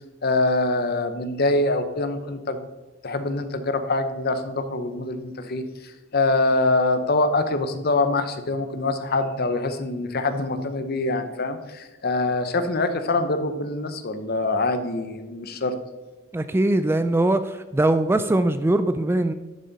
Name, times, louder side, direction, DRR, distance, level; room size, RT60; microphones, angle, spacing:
voice 1, 0.2-2.6 3.0-15.7, left 2 dB, 50° left, 9 dB, 0.8 m, -24 dB
voice 2, 16.3-19.3, right 1 dB, 10° right, 11 dB, 0.3 m, -21 dB
11.5 x 7.4 x 4.1 m, 1.1 s
head